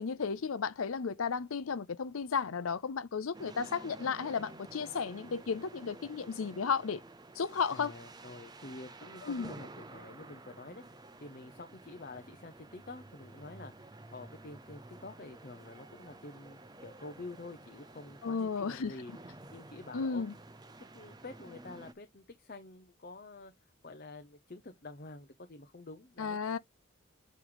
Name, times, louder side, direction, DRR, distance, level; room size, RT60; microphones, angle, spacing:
voice 1, 0.0-7.0 7.3-7.9 9.2-9.5 18.2-18.9 19.9-20.3 26.2-26.6, left 5 dB, 85° left, 0.6 m, -34 dB
sound 1, 3.3-21.9, right 2 dB, 20° right, 0.7 m, -52 dB
voice 2, 7.7-19.1 19.5-20.3 20.8-26.6, left 2 dB, 45° left, 0.8 m, -48 dB
9.2 x 3.2 x 4.0 m
head